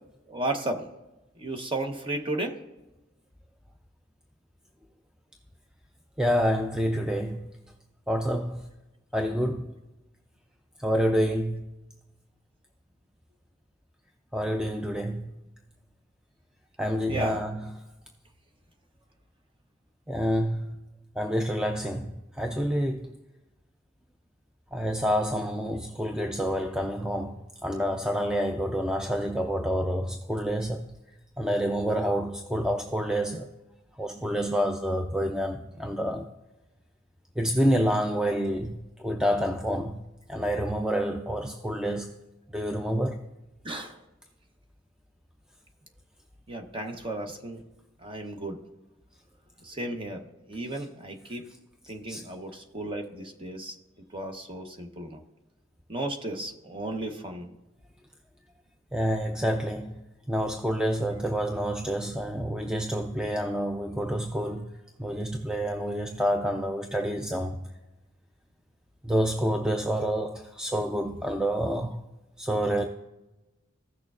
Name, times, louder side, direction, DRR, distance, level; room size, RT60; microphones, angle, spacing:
voice 1, 0.3-0.9 1.4-2.6 17.1-17.4 43.6-44.0 46.5-47.6 48.0-48.6 49.6-51.4 51.9-53.8 54.1-55.2 55.9-57.5, right 1 dB, 25° right, 0.9 m, -34 dB
voice 2, 6.2-7.5 8.1-8.7 9.1-9.7 10.8-11.7 14.3-15.3 16.8-17.7 20.1-20.7 21.2-23.2 24.7-30.9 31.4-33.5 34.0-36.3 37.4-40.0 40.3-42.1 42.5-43.2 52.1-52.3 58.9-59.9 60.3-64.7 65.0-67.6 69.0-72.0 72.4-72.8, equal, 5° right, 0.4 m, -28 dB
15.5 x 6.4 x 2.4 m
head